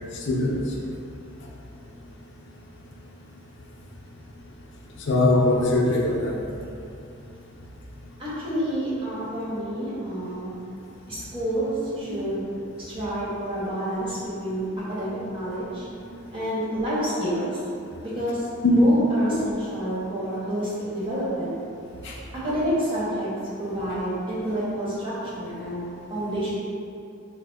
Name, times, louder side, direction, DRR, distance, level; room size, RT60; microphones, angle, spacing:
voice 1, 0.2-0.6 5.1-6.3 12.1-12.2 18.6-18.9 19.3-19.4 22.0-22.1, left 1 dB, 60° left, -2 dB, 0.5 m, -21 dB
voice 2, 8.2-10.5 11.1-12.4 12.8-14.6 14.9-15.9 16.3-17.6 18.0-21.5 22.3-23.3 23.6-26.5, equal, 25° right, -10 dB, 1.2 m, -29 dB
4.2 x 2.1 x 3.9 m, 2.7 s
head